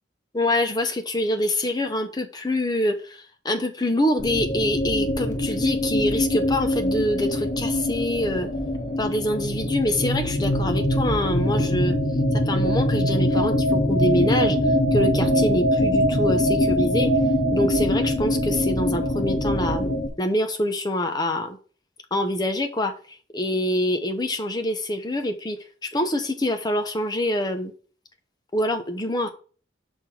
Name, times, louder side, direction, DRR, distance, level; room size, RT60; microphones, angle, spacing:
voice 1, 0.3-8.5 9.0-12.0 12.4-14.6 14.9-17.1 17.5-21.6 22.1-22.9 23.3-27.7 28.5-29.3, left 1 dB, 20° left, 6 dB, 0.9 m, -25 dB
sound 1, 4.2-20.1, equal, 40° left, 1.2 m, -23 dB
6.0 x 5.5 x 4.4 m, 0.38 s
head